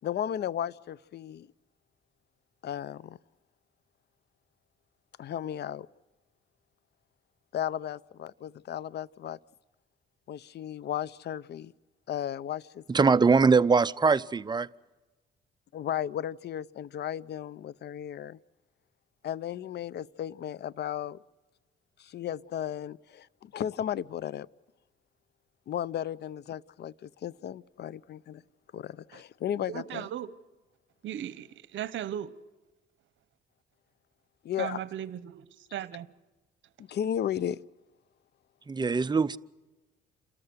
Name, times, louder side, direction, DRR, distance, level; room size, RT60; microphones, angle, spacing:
voice 1, 0.0-1.5 2.6-3.2 5.2-5.9 7.5-9.4 10.3-11.7 12.1-13.1 15.7-18.4 19.2-21.2 22.0-24.5 25.7-28.4 28.7-30.1 34.4-34.8 36.8-37.6, left 10 dB, 55° left, 0.6 m, -35 dB
voice 2, 12.9-14.7 38.7-39.4, right 4 dB, 20° right, 0.6 m, -22 dB
voice 3, 29.7-30.3 31.0-32.3 34.6-36.1, right 11 dB, 70° right, 1.0 m, -37 dB
28.5 x 13.5 x 7.9 m
cardioid pair, 90°, 20 cm